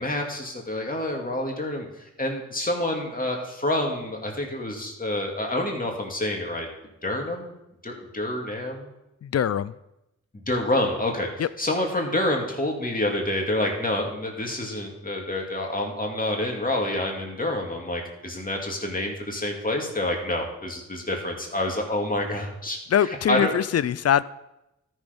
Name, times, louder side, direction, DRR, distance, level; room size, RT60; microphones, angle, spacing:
voice 1, 0.0-6.7 7.0-7.6 7.8-8.9 10.3-23.5, left 1 dB, 30° left, 0 dB, 2.4 m, -28 dB
voice 2, 9.2-9.7 11.4-11.5 22.9-24.2, left 9 dB, 55° left, 18 dB, 0.5 m, -22 dB
13.0 x 6.3 x 5.2 m, 0.91 s
cardioid pair, 55°, 30 cm